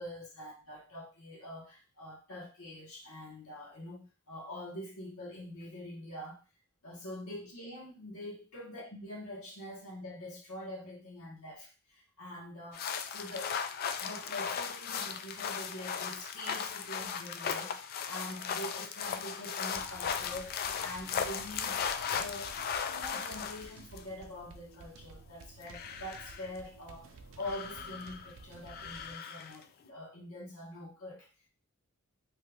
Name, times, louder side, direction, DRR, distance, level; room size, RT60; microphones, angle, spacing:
voice 1, 0.0-6.4 6.8-13.6 14.0-21.8 22.1-31.3, left 1 dB, 75° left, -1 dB, 1.3 m, -45 dB
sound 1, 12.7-24.0 25.4-26.5 27.4-28.3 28.7-29.6, left 7 dB, 45° left, 0.3 m, -37 dB
sound 2, 19.7-29.1, right 4 dB, 65° right, 0.4 m, -53 dB
3.2 x 2.5 x 3.4 m, 0.32 s
head